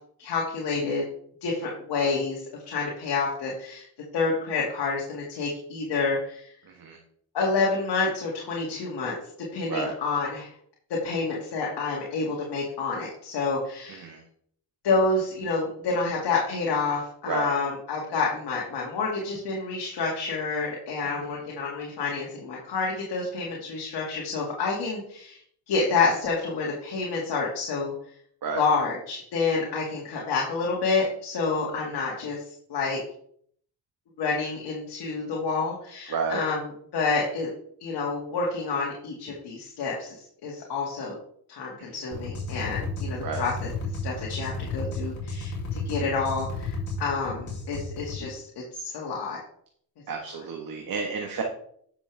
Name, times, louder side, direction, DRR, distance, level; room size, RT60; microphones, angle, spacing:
voice 1, 0.2-1.1 1.4-2.4 2.7-3.9 4.1-6.5 7.3-9.2 9.5-10.5 10.9-14.1 14.8-25.4 25.7-27.9 28.5-32.4 32.7-33.0 34.2-36.6 36.9-37.5 37.8-41.1 41.5-43.7 44.0-49.4, left 4 dB, 70° left, -3 dB, 2.3 m, -28 dB
voice 2, 6.7-7.0 9.7-9.9 13.9-14.2 17.3-17.5 21.0-21.4 28.4-28.6 31.9-32.0 36.1-36.4 41.8-41.9 43.2-43.4 50.1-51.4, right 5 dB, 55° right, 2 dB, 1.5 m, -31 dB
sound 1, 42.1-48.2, left 3 dB, 45° left, 3.4 m, -33 dB
9.8 x 6.8 x 3.5 m, 0.64 s
cardioid pair, 75°, 40 cm